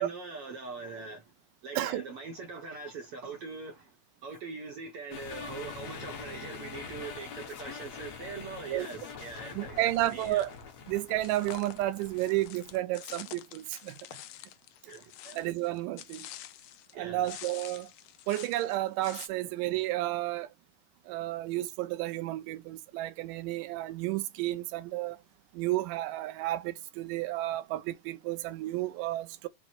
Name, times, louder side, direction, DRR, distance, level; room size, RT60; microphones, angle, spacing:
voice 1, 0.0-1.3 1.6-3.9 4.2-10.4 14.8-15.4 16.9-17.3 19.4-19.5, right 4 dB, 65° right, 1.5 m, -42 dB
sound 1, 5.1-12.8, left 5 dB, 60° left, 2.0 m, -44 dB
voice 2, 9.6-10.5 10.9-14.0 15.3-16.3 16.9-17.9 18.3-20.5 21.1-25.2 25.5-29.5, right 16 dB, 85° right, 2.2 m, -32 dB
sound 2, 9.9-10.6 11.2-16.9 17.2-19.3, left 13 dB, 80° left, 1.7 m, -48 dB
5.9 x 2.1 x 4.2 m
omnidirectional pair, 3.7 m